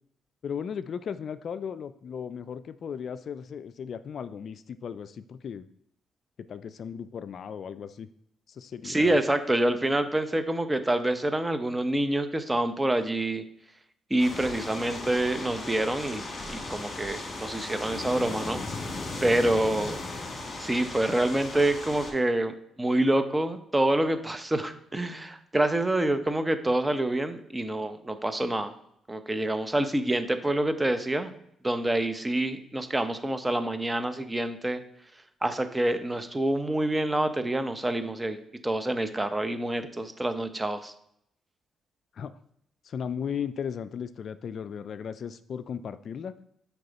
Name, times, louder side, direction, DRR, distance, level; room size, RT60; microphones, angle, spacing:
voice 1, 0.4-5.7 6.5-8.1 8.5-9.2 42.2-42.3 42.8-46.3, left 7 dB, 55° left, 13 dB, 0.3 m, -36 dB
voice 2, 8.8-13.4 14.1-18.6 19.2-20.0 20.6-28.7 29.1-31.3 31.6-34.8 35.4-38.4 38.6-40.9, right 1 dB, 15° right, 10 dB, 0.7 m, -27 dB
sound 1, 14.2-22.1, left 2 dB, 40° left, 2.0 m, -37 dB
6.5 x 4.7 x 4.1 m, 0.71 s
cardioid pair, 90°, 0 cm